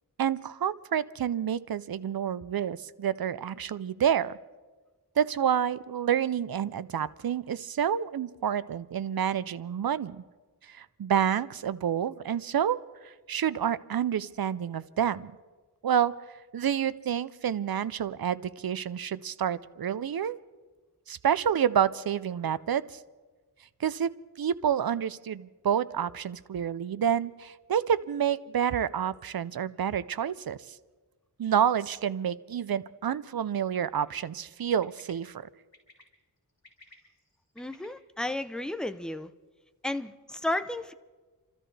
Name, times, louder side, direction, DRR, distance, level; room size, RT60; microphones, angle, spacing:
voice 1, 0.2-4.3 5.2-10.2 10.7-15.3 15.8-16.1 16.5-20.4 21.1-23.0 23.8-24.1 24.4-30.8 31.4-35.5, right 9 dB, 70° right, 16 dB, 0.6 m, -28 dB
Bird, 33.8-34.1 34.8-35.1 35.7-36.0 36.5-37.9, left 3 dB, 45° left, 4.4 m, -55 dB
voice 2, 37.6-39.3 39.8-40.9, left 1 dB, ahead, 10 dB, 0.7 m, -33 dB
30.0 x 13.5 x 3.3 m, 1.3 s
wide cardioid pair, 50°, 37 cm